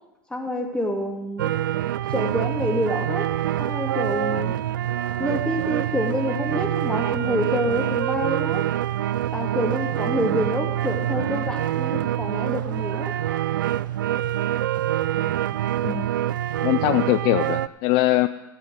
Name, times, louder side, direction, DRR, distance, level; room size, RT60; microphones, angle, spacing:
voice 1, 0.3-1.5 2.1-3.3 3.6-4.5 5.2-8.7 9.3-13.1, left 1 dB, 10° left, 1 dB, 3.0 m, -27 dB
sound 1, 1.4-17.7, right 12 dB, 80° right, 0.4 m, -25 dB
voice 2, 16.6-18.3, left 17 dB, 50° left, 13 dB, 0.5 m, -21 dB
13.5 x 9.2 x 8.0 m, 0.99 s
hypercardioid pair, 90°, 11 cm